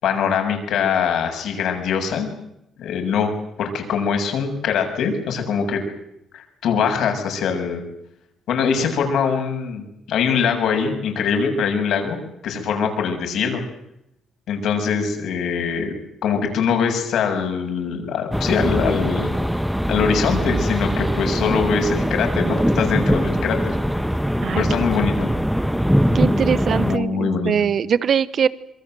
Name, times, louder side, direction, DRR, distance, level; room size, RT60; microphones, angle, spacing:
voice 1, 0.0-2.3 2.8-3.3 3.6-5.8 6.3-7.8 8.5-12.2 12.4-13.6 14.5-15.9 16.2-19.3 19.9-23.8 24.6-25.3 26.8-27.5, left 6 dB, 75° left, 4 dB, 7.2 m, -22 dB
sound 1, 18.3-27.0, equal, ahead, 1.3 m, -21 dB
voice 2, 26.1-28.5, right 8 dB, 55° right, 17 dB, 1.2 m, -21 dB
26.5 x 23.5 x 7.8 m, 0.80 s
cardioid pair, 90°, 0 cm